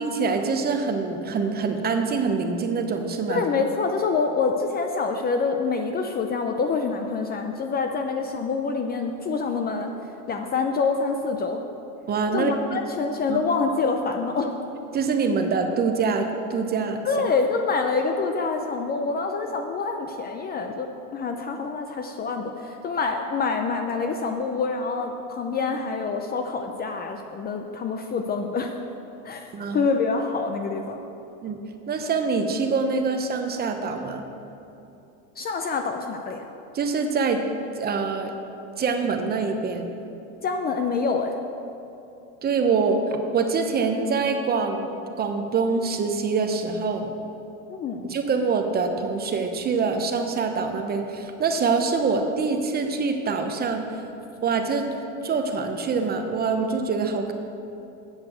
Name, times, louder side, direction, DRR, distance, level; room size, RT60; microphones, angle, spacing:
voice 1, 0.0-3.5 12.1-12.5 13.3-13.4 14.9-17.0 29.5-29.9 31.4-34.2 36.7-37.4 37.8-38.3 38.8-39.9 42.4-44.9 45.2-47.1 48.0-53.9 54.4-54.9 55.2-57.3, right 4 dB, 25° right, 6 dB, 0.8 m, -25 dB
voice 2, 3.3-9.9 10.3-11.6 12.3-14.5 17.0-28.7 29.2-29.5 29.7-31.0 35.4-36.4 40.4-41.3 47.7-48.1, left 4 dB, 25° left, 5 dB, 0.5 m, -26 dB
8.1 x 6.7 x 7.9 m, 2.8 s
supercardioid pair, 130°, 39 cm